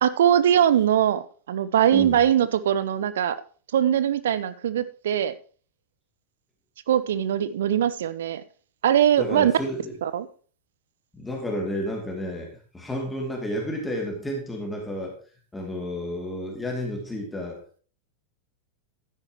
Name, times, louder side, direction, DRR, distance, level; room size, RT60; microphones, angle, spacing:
voice 1, 0.0-3.4 3.7-5.3 6.9-8.4 8.8-9.5 10.0-10.3, right 10 dB, 60° right, 14 dB, 0.7 m, -21 dB
voice 2, 1.9-2.2 9.2-9.9 11.1-15.1 15.5-17.8, equal, 10° left, 0 dB, 2.6 m, -31 dB
12.0 x 9.8 x 3.0 m, 0.41 s
figure-of-eight pair, 90°, 0 cm